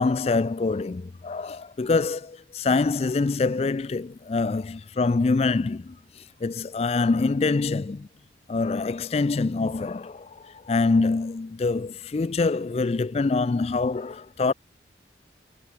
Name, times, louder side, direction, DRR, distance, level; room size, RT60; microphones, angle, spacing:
voice 1, 0.0-8.1 8.5-14.5, left 3 dB, 35° left, 0.4 m, -25 dB
head